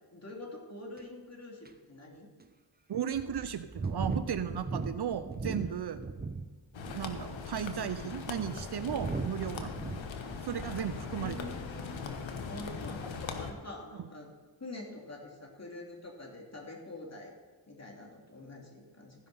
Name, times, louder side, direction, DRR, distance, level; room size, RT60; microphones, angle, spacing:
voice 1, 0.1-2.3 5.6-5.8 9.6-9.7 11.2-12.0 12.4-14.3 14.6-17.3 17.7-19.3, left 2 dB, 35° left, -1 dB, 3.0 m, -46 dB
sound 1, 1.0-1.1 1.6-1.7 2.4-2.5 3.1-6.5 6.8-7.3 8.0-11.4 11.7-12.1, right 3 dB, 20° right, 1.0 m, -38 dB
voice 2, 2.9-6.0 6.9-9.7 10.4-11.5 14.0-14.1, right 9 dB, 55° right, 11 dB, 0.7 m, -35 dB
sound 2, 6.7-13.5, left 5 dB, 75° left, 1.2 m, -40 dB
14.5 x 5.4 x 5.5 m, 1.3 s
cardioid pair, 45°, 47 cm